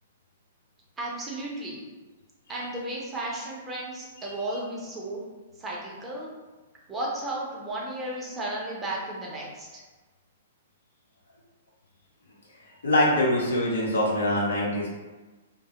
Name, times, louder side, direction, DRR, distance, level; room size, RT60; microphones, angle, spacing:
voice 1, 1.0-1.8 2.5-5.2 5.6-6.3 6.9-9.7, right 1 dB, 20° right, -4 dB, 0.6 m, -34 dB
voice 2, 12.8-14.9, left 1 dB, 85° left, -5 dB, 0.8 m, -24 dB
2.1 x 2.0 x 2.9 m, 1.2 s
hypercardioid pair, 120°, 0 cm